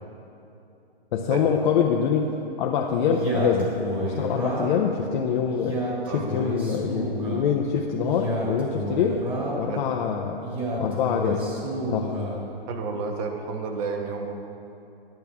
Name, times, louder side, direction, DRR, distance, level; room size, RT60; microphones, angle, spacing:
voice 1, 1.1-2.3 2.6-3.7 4.0-5.8 6.1-9.2 9.6-10.4 10.8-11.5 11.9-12.1, left 7 dB, 50° left, 0 dB, 0.7 m, -25 dB
Male speech man speaking, 3.1-4.9 5.5-7.5 8.0-9.7 10.4-12.4, equal, 15° right, 1.9 m, -30 dB
voice 2, 12.7-14.3, right 4 dB, 35° right, 3 dB, 1.1 m, -31 dB
10.5 x 10.5 x 3.5 m, 2.8 s
hypercardioid pair, 135°, 31 cm